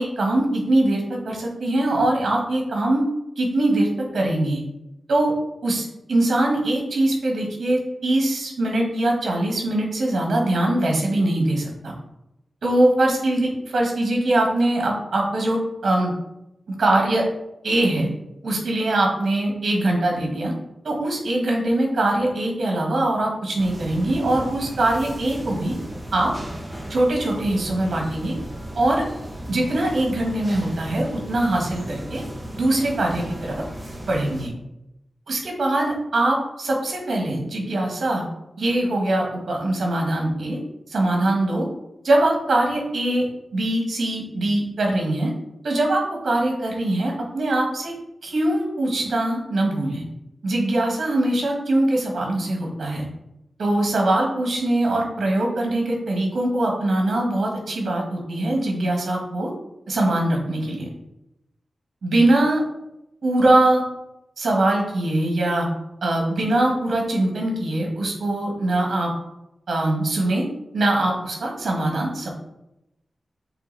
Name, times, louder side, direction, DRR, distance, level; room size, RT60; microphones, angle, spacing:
voice 1, 0.0-3.0 3.4-4.6 5.1-5.3 5.6-11.9 12.6-16.1 16.7-17.2 17.6-18.1 18.4-20.5 20.8-25.7 26.1-26.3 26.9-28.3 28.7-29.0 29.5-32.2 32.6-33.6 34.1-34.5 35.3-38.2 38.6-40.6 40.9-41.7 42.0-43.3 43.5-45.3 45.6-47.9 48.2-50.0 50.4-53.1 53.6-59.5 59.9-60.9 62.0-62.6 63.2-63.8 64.4-65.7 66.0-69.1 69.7-70.4 70.7-72.3, right 1 dB, 65° right, 0 dB, 1.9 m, -22 dB
sound 1, 23.6-34.5, right 1 dB, 15° right, 1.2 m, -36 dB
7.1 x 3.5 x 4.1 m, 0.88 s
wide cardioid pair, 125°, 0 cm